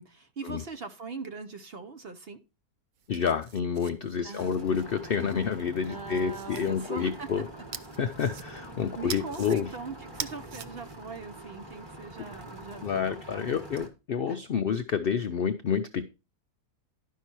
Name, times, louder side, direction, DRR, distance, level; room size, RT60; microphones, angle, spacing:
voice 1, 0.0-2.4 4.2-4.5 5.9-7.7 9.0-13.6 14.3-14.4, right 4 dB, 50° right, 9 dB, 0.8 m, -41 dB
sound 1, 3.0-5.3 5.9-6.7 7.7-8.7 9.1-9.6 10.0-10.7, right 7 dB, 70° right, 0.4 m, -42 dB
voice 2, 3.1-7.4 8.0-9.7 12.8-16.1, left 7 dB, 75° left, 10 dB, 0.5 m, -29 dB
sound 2, 4.4-13.9, right 1 dB, 15° right, 1.5 m, -45 dB
11.5 x 5.6 x 4.5 m, 0.28 s
omnidirectional pair, 1.6 m